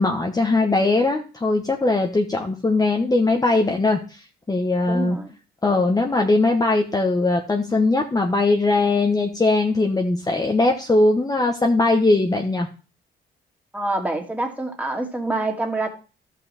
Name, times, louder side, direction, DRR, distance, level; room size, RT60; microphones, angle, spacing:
voice 1, 0.0-5.2 5.6-12.7, left 2 dB, 20° left, 2 dB, 1.1 m, -20 dB
voice 2, 4.8-5.3 13.7-15.9, right 2 dB, 5° right, 1 dB, 2.3 m, -26 dB
12.5 x 5.6 x 4.2 m, 0.34 s
cardioid pair, 90°, 20 cm